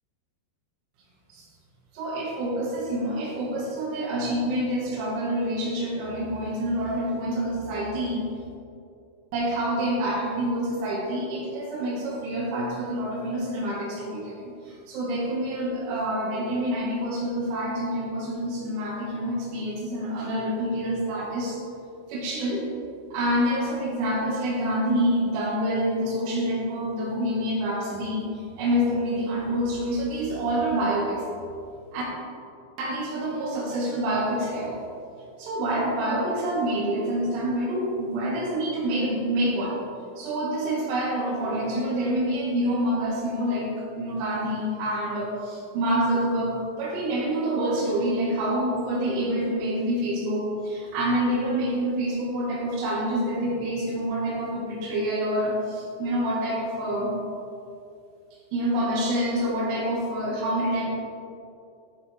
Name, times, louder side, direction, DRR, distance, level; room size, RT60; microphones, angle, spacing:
voice 1, 1.9-8.2 9.3-21.6 22.1-22.7 23.1-28.3 28.6-31.2 31.9-32.0 32.8-34.8 35.4-39.8 40.2-43.7 44.0-57.1 58.5-60.8, right 1 dB, 90° right, -4 dB, 4.8 m, -27 dB
13.0 x 7.7 x 3.6 m, 2.6 s
omnidirectional pair, 6.0 m